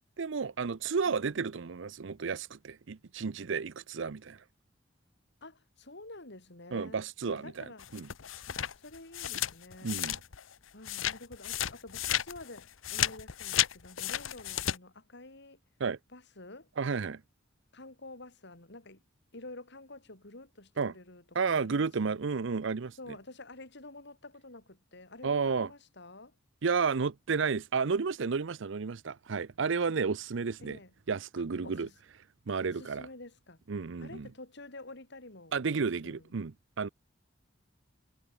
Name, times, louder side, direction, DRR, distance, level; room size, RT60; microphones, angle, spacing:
voice 1, 0.2-4.4 6.7-8.1 9.8-10.2 15.8-16.0 16.8-17.2 20.8-20.9 21.3-23.0 25.2-25.7 26.6-30.8 31.1-31.9 32.5-33.1 33.7-34.3 35.5-36.9, right 5 dB, 65° right, 0.6 m, -32 dB
voice 2, 1.0-1.3 5.4-7.9 8.4-10.0 10.7-15.6 16.1-16.7 17.7-19.0 19.3-22.2 23.0-26.3 30.6-30.9 31.6-32.0 32.6-33.6 34.0-36.3, left 2 dB, 60° left, 4.8 m, -49 dB
sound 1, 7.8-10.5 10.8-14.8, left 11 dB, 80° left, 0.8 m, -33 dB
head